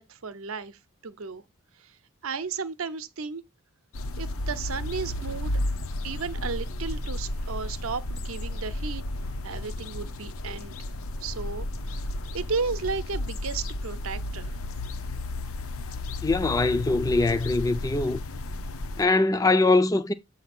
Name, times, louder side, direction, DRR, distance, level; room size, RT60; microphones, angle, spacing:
voice 1, 0.0-1.4 1.8-1.9 2.2-3.4 4.2-5.5 6.0-9.0 9.4-10.8 11.2-11.7 12.3-14.6, right 5 dB, 70° right, 0.6 m, -34 dB
sound 1, 3.9-19.0, left 1 dB, 75° left, 0.6 m, -33 dB
voice 2, 16.2-18.2 19.0-20.1, left 2 dB, 15° left, 0.3 m, -22 dB
7.9 x 2.8 x 5.9 m
head